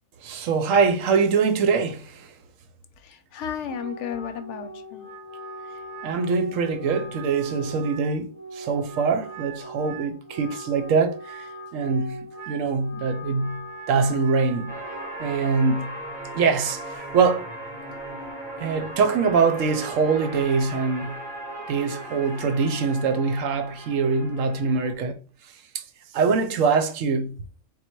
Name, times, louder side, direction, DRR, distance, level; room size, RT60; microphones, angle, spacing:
voice 1, 0.2-2.3 6.0-11.5 11.7-14.8 15.2-15.9 16.3-17.5 18.6-21.2 21.7-25.2 25.7-25.8 26.1-27.4, right 5 dB, 75° right, 1.0 m, -23 dB
voice 2, 3.0-5.1, left 8 dB, 70° left, 0.8 m, -34 dB
Wind instrument woodwind instrument, 3.6-15.3, right 2 dB, 10° right, 1.8 m, -40 dB
sound 1, 14.7-24.9, right 1 dB, 40° right, 1.5 m, -37 dB
3.8 x 2.3 x 4.4 m
omnidirectional pair, 1.4 m